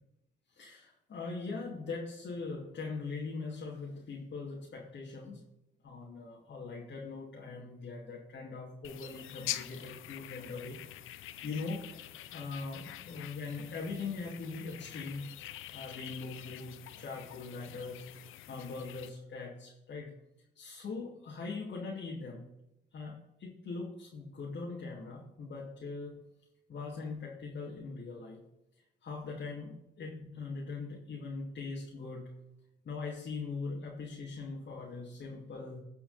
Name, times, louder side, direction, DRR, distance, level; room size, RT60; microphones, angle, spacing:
voice 1, 0.5-5.4 5.8-11.9 12.3-15.3 15.7-20.1 20.5-22.5 22.9-26.2 26.7-28.4 29.0-32.3 32.8-35.8, left 4 dB, 60° left, -4 dB, 2.6 m, -41 dB
sound 1, 8.8-19.1, left 13 dB, 85° left, 0.6 m, -45 dB
17.0 x 5.7 x 4.2 m, 0.90 s
supercardioid pair, 60°, 20 cm